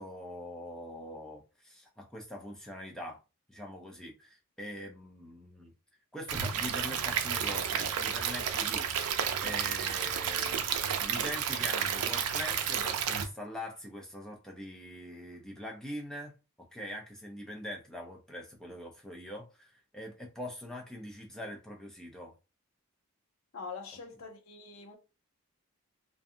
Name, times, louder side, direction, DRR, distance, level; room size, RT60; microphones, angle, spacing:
voice 1, 0.0-3.2 3.5-5.7 6.1-8.9 9.4-10.7 11.0-22.3, equal, 5° left, 0.5 m, -43 dB
Stream / Liquid, 6.3-13.2, right 8 dB, 90° right, 0.4 m, -31 dB
voice 2, 23.5-25.0, left 4 dB, 70° left, 0.7 m, -44 dB
2.5 x 2.3 x 2.6 m
head